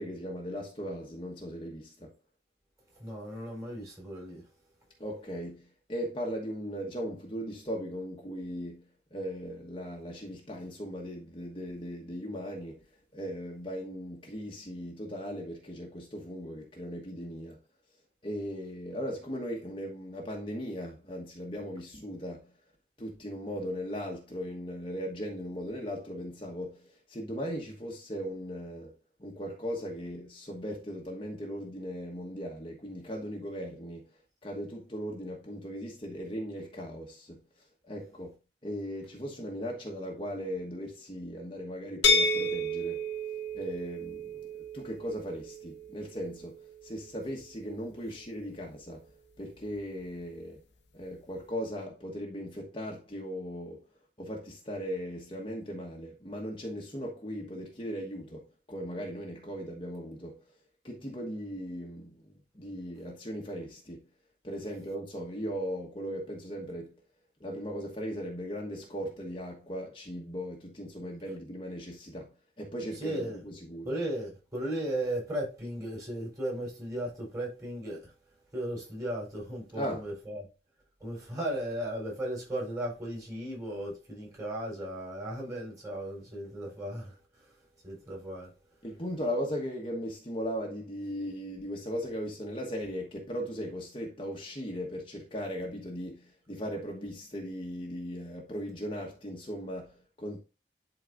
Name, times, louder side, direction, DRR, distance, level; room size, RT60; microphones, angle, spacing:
voice 1, 0.0-2.1 5.0-8.8 9.1-12.8 13.1-17.6 18.2-22.5 23.0-28.9 29.2-34.1 34.4-37.4 37.9-38.3 38.6-43.0 43.5-44.5 44.7-46.6 46.8-49.0 49.4-50.6 50.9-53.8 54.2-60.4 60.8-64.1 64.4-66.9 67.4-73.9 79.7-80.0 88.8-100.4, equal, 30° left, 1.2 m, -38 dB
voice 2, 3.0-4.4 72.9-73.4 73.8-78.1 78.5-80.4 81.0-87.2 87.8-88.5, right 1 dB, 20° right, 3.9 m, -36 dB
sound 1, 42.0-47.8, left 1 dB, 80° left, 0.9 m, -32 dB
11.5 x 4.1 x 2.5 m
head